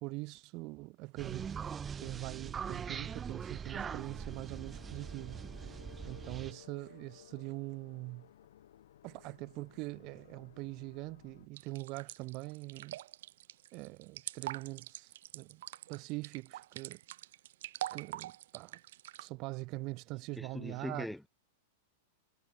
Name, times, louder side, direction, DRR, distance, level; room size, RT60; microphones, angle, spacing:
voice 1, 0.0-1.7 2.0-5.7 6.1-8.3 9.0-13.0 13.7-15.6 15.9-17.0 17.9-18.8 19.2-21.1, right 24 dB, 45° right, 2.3 m, -43 dB
sound 1, 1.2-6.5, right 7 dB, 20° right, 1.3 m, -42 dB
sound 2, 3.8-11.5, left 11 dB, 80° left, 2.2 m, -58 dB
sound 3, 11.6-19.3, right 14 dB, 70° right, 1.9 m, -44 dB
voice 2, 20.4-21.3, left 1 dB, ahead, 0.6 m, -41 dB
supercardioid pair, 140°, 0 cm